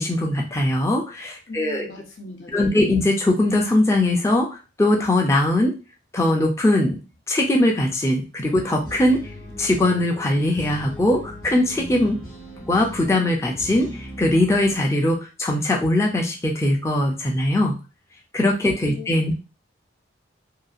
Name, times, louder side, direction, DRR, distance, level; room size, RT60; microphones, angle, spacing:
voice 1, 0.0-1.9 2.5-4.5 4.8-5.7 6.1-7.0 7.3-9.2 9.6-12.2 12.7-17.8 18.3-19.3, left 1 dB, 15° left, -1 dB, 0.4 m, -20 dB
voice 2, 1.5-2.8 18.9-19.3, left 2 dB, 80° left, 2 dB, 0.7 m, -39 dB
sound 1, 8.4-14.8, equal, 45° left, 0.9 m, -38 dB
2.8 x 2.3 x 2.4 m, 0.31 s
head